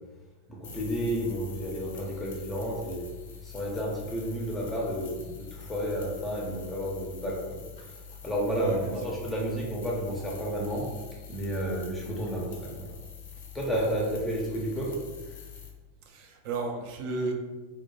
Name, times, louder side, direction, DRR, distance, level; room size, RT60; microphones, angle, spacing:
voice 1, 0.5-3.2 3.4-10.9 11.3-13.0 13.5-15.4, equal, 5° left, -4 dB, 0.5 m, -32 dB
sound 1, 0.6-15.7, left 7 dB, 60° left, 0.4 m, -45 dB
voice 2, 8.5-9.2 16.1-17.3, right 4 dB, 45° right, 2 dB, 0.4 m, -33 dB
2.2 x 2.1 x 3.0 m, 1.2 s
figure-of-eight pair, 90°, 0 cm